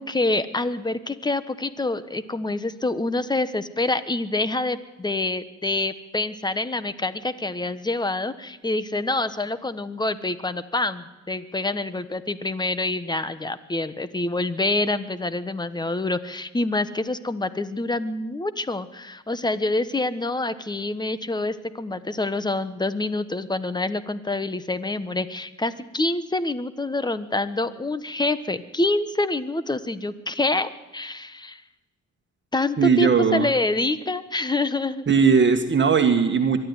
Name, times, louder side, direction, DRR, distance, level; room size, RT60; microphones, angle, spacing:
voice 1, 0.0-31.6 32.5-35.0, left 2 dB, 15° left, 13 dB, 1.1 m, -26 dB
voice 2, 32.8-33.5 35.1-36.6, right 6 dB, 40° right, 5 dB, 1.8 m, -18 dB
23.0 x 12.5 x 9.7 m, 1.1 s
cardioid pair, 90°, 30 cm